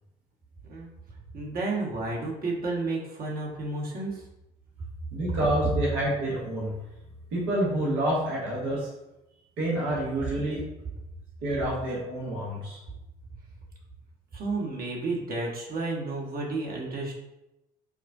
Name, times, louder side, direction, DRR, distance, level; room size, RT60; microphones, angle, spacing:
voice 1, 1.3-4.2 14.3-17.1, right 3 dB, 50° right, -2 dB, 1.1 m, -31 dB
voice 2, 5.1-6.7 7.3-8.9 9.6-10.6 11.4-12.8, right 1 dB, 75° right, -5 dB, 1.1 m, -28 dB
4.8 x 2.2 x 2.6 m, 0.92 s
hypercardioid pair, 55°, 19 cm